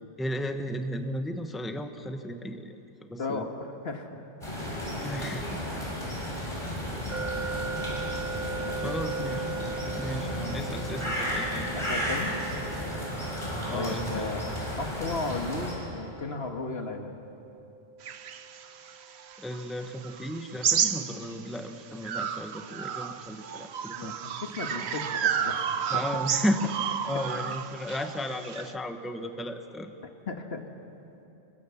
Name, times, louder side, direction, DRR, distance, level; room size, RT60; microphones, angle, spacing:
voice 1, 0.2-2.8 3.0-3.5 4.9-5.6 8.8-9.4 10.0-11.7 13.7-14.3 19.4-24.2 24.8-25.0 25.9-26.7 27.1-29.9, equal, ahead, 6 dB, 1.0 m, -34 dB
voice 2, 3.2-4.2 8.5-8.9 11.7-12.3 13.7-14.4 14.8-17.2 24.0-26.1 30.3-30.6, left 3 dB, 65° left, 4 dB, 1.8 m, -35 dB
sound 1, 4.4-15.7, equal, 25° left, 6.5 m, -33 dB
sound 2, 7.1-20.0, right 4 dB, 40° right, 1.3 m, -40 dB
sound 3, 18.0-21.6 22.0-28.7, right 8 dB, 75° right, 1.1 m, -31 dB
26.0 x 23.0 x 7.1 m, 3.0 s
omnidirectional pair, 1.1 m